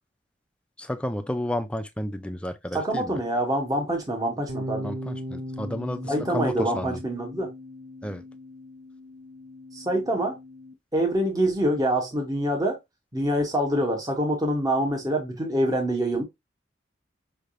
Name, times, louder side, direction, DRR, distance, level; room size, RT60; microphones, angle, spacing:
voice 1, 0.8-3.2 4.8-7.0 8.0-8.2, left 1 dB, 5° left, 0.5 m, -31 dB
voice 2, 2.7-4.9 6.1-7.5 9.7-10.4 10.9-12.8 13.1-16.2, right 1 dB, 20° right, 1.0 m, -25 dB
sound 1, 4.5-10.7, equal, 75° right, 1.0 m, -39 dB
5.5 x 3.4 x 2.5 m
head